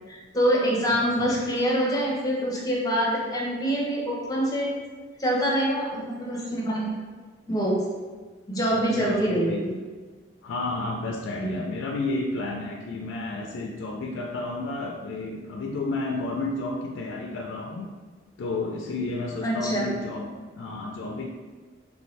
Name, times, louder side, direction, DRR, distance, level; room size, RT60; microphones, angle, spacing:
voice 1, 0.1-4.7 5.2-6.9 7.5-7.8 8.5-9.7 11.4-11.6 19.4-19.9, equal, 20° left, -3 dB, 0.6 m, -25 dB
voice 2, 0.9-1.4 8.7-9.6 10.4-17.9 18.4-20.3 20.6-21.3, left 2 dB, 75° left, 1 dB, 0.3 m, -31 dB
3.5 x 2.6 x 3.1 m, 1.4 s
head